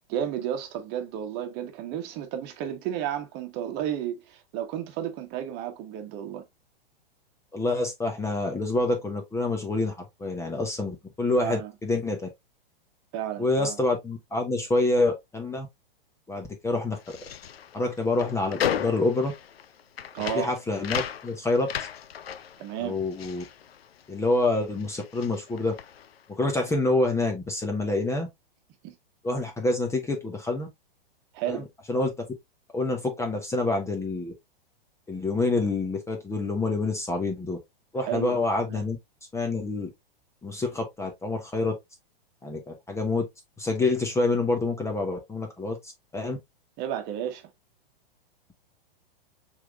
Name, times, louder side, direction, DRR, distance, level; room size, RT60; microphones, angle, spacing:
voice 1, 0.1-6.4 11.4-11.7 13.1-13.8 20.1-20.5 22.6-23.0 28.8-28.9 31.3-31.7 38.0-38.4 38.7-38.8 46.8-47.5, right 10 dB, 35° right, 1.2 m, -32 dB
voice 2, 7.5-12.2 13.4-15.7 16.3-17.2 17.7-19.3 20.3-21.7 22.8-23.4 24.1-25.7 26.3-28.3 29.2-30.7 31.5-32.3 32.7-34.3 35.1-37.6 37.9-39.0 39.3-39.9 40.4-41.7 42.4-43.3 43.6-45.8 46.1-46.4, left 2 dB, 10° left, 1.0 m, -27 dB
sound 1, 16.9-24.4 24.7-26.2, left 9 dB, 90° left, 0.6 m, -35 dB
5.8 x 3.5 x 2.4 m
hypercardioid pair, 125°, 29 cm